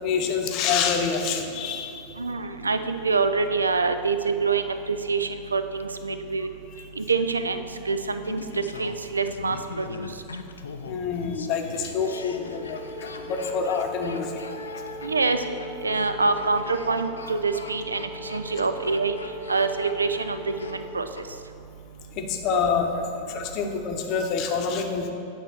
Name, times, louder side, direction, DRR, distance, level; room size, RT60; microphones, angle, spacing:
voice 1, 0.0-2.0 6.8-6.9 10.9-12.8 13.2-14.4 22.2-25.1, left 5 dB, 40° left, 3 dB, 0.8 m, -27 dB
voice 2, 2.2-6.5 7.0-8.4 8.8-10.1 15.0-15.4 15.8-19.2 19.5-21.1, right 4 dB, 75° right, 9 dB, 0.4 m, -26 dB
Laughter, 8.2-21.3 21.5-21.6, left 4 dB, 70° left, 0.4 m, -41 dB
Wind instrument woodwind instrument, 11.8-21.0, left 1 dB, 35° right, 1.3 m, -41 dB
8.8 x 3.4 x 6.0 m, 2.6 s
figure-of-eight pair, 90°, 0 cm